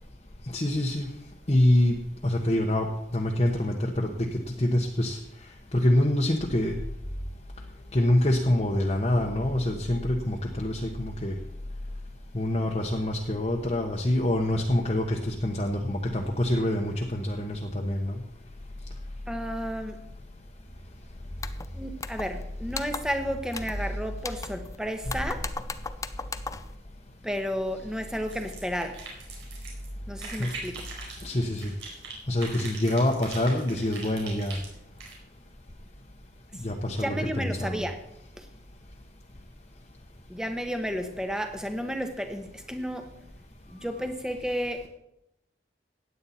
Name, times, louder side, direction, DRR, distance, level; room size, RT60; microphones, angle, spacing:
voice 1, 0.5-1.1 1.5-2.0 2.2-2.9 3.1-5.2 5.7-6.8 7.9-11.3 12.3-18.2 30.4-30.5 31.2-31.7 32.3-34.6 36.6-37.8, left 1 dB, 35° left, 0 dB, 1.0 m, -26 dB
voice 2, 19.3-20.0 21.7-25.5 27.2-29.0 30.1-30.8 37.0-38.0 38.4-38.5 40.3-43.1 43.7-44.9, equal, 5° right, 6 dB, 1.1 m, -32 dB
sound 1, 21.4-21.7 22.0-22.4 22.7-23.2 23.5-23.9 24.2-24.8 25.1-26.7, left 4 dB, 15° left, 0.4 m, -37 dB
sound 2, 28.3-29.9 30.2-32.1 32.4-35.1, right 4 dB, 80° right, 4.6 m, -41 dB
16.5 x 9.7 x 4.3 m, 0.80 s
head